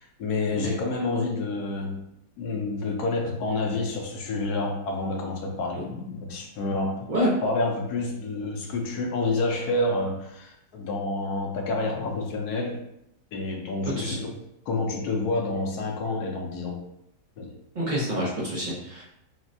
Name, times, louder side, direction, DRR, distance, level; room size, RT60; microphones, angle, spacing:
voice 1, 0.0-2.0 2.4-7.1 7.4-12.8 13.3-14.3 14.7-16.8 17.4-17.5, left 2 dB, 70° left, 1 dB, 1.2 m, -28 dB
voice 2, 13.8-14.3 17.7-19.0, equal, 65° right, -6 dB, 0.4 m, -27 dB
5.8 x 2.0 x 2.6 m, 0.80 s
omnidirectional pair, 1.9 m